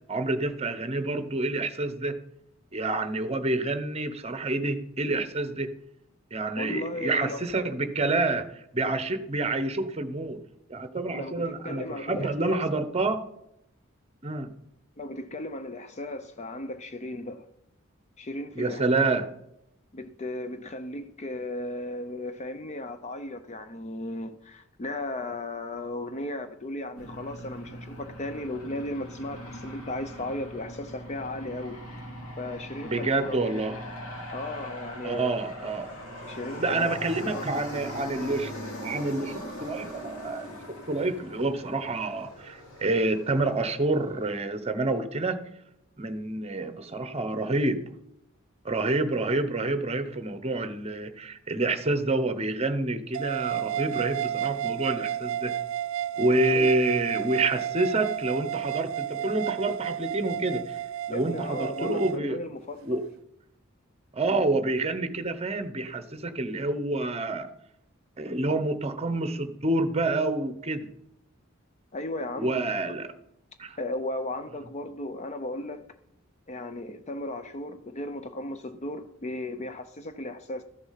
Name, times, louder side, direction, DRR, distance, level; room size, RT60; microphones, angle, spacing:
voice 1, 0.1-2.2 2.7-5.7 6.3-10.4 10.7-13.2 14.2-14.5 18.6-19.2 32.8-33.8 35.0-35.9 36.6-38.5 38.8-45.4 46.0-47.8 48.6-55.5 56.2-60.8 61.1-62.4 62.9-63.0 64.1-67.5 68.2-70.9 72.4-73.1 73.6-73.8, right 2 dB, 30° right, 11 dB, 0.9 m, -28 dB
voice 2, 6.6-7.4 11.1-12.6 15.0-17.5 18.2-19.2 19.9-31.8 32.4-33.6 34.3-35.4 36.3-36.9 37.3-37.5 56.5-56.7 61.1-63.0 71.9-72.7 73.8-75.8 76.5-80.6, left 1 dB, 35° left, 10 dB, 0.5 m, -36 dB
Aircraft, 27.0-44.4, equal, 85° left, 3.1 m, -41 dB
sound 1, 53.1-62.2, right 11 dB, 70° right, 0.3 m, -32 dB
13.5 x 6.8 x 5.8 m, 0.80 s
head